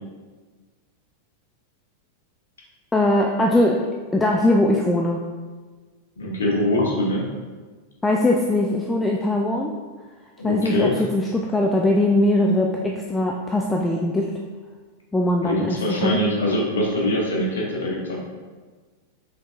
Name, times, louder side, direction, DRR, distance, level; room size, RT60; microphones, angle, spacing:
voice 1, 2.9-5.2 8.0-9.7 10.4-14.4 15.1-16.2, left 1 dB, 10° left, 1 dB, 0.3 m, -21 dB
voice 2, 6.2-7.2 10.4-11.0 15.4-18.2, left 1 dB, 65° left, -3 dB, 1.0 m, -23 dB
5.1 x 3.6 x 2.4 m, 1.4 s
figure-of-eight pair, 90°, 0 cm